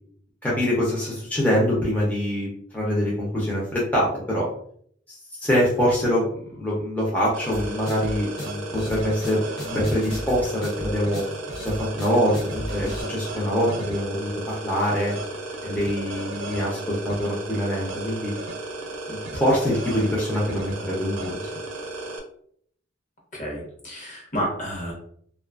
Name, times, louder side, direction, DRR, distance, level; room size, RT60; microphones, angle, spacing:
voice 1, 0.4-4.5 5.1-9.4 9.7-11.2 11.6-15.1 15.6-18.3 19.1-21.6, equal, 10° left, -6 dB, 0.5 m, -24 dB
sound 1, 7.3-22.2, right 2 dB, 85° right, 0.5 m, -34 dB
sound 2, 7.5-13.0, equal, 85° left, 0.9 m, -35 dB
voice 2, 23.3-24.9, equal, 45° left, -3 dB, 1.0 m, -30 dB
2.5 x 2.3 x 2.4 m, 0.63 s
head